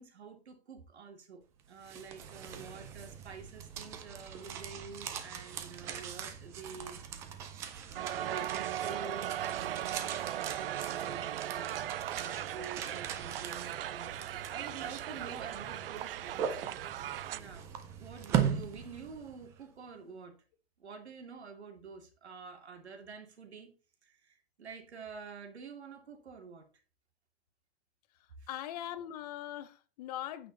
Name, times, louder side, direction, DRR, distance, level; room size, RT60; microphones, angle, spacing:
voice 1, 0.0-1.4 1.7-7.0 7.9-16.7 17.3-17.6 18.0-20.3 20.8-23.7 24.0-26.6 28.4-28.5, right 5 dB, 90° right, 2.8 m, -48 dB
sound 1, 1.6-19.6, right 9 dB, 10° right, 0.3 m, -40 dB
Crowd, 7.9-17.4, right 12 dB, 60° right, 0.6 m, -38 dB
voice 2, 28.5-30.5, left 12 dB, 40° left, 0.9 m, -41 dB
8.9 x 8.2 x 4.0 m
hypercardioid pair, 150°, 32 cm